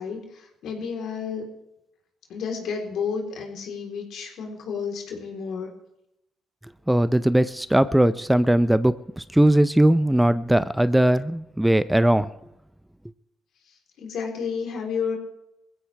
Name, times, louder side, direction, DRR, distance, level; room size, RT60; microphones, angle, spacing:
voice 1, 0.0-1.4 2.3-5.7 13.7-15.2, left 6 dB, 70° left, 1 dB, 3.7 m, -31 dB
voice 2, 6.9-12.3, right 1 dB, 5° right, 14 dB, 0.6 m, -19 dB
21.0 x 15.5 x 3.4 m, 0.85 s
supercardioid pair, 65°, 0 cm